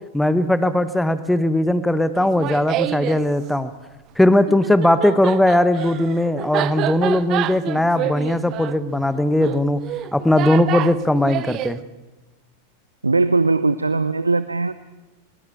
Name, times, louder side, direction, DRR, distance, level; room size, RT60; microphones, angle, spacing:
voice 1, 0.1-3.7 4.2-9.8 10.1-11.8, left 1 dB, 5° left, 13 dB, 1.0 m, -19 dB
Laughter, 2.2-3.2 4.5-11.8, right 14 dB, 35° right, 0.8 m, -28 dB
voice 2, 13.0-14.7, right 3 dB, 80° right, 15 dB, 0.7 m, -19 dB
21.5 x 19.0 x 8.7 m, 1.1 s
figure-of-eight pair, 90°, 0 cm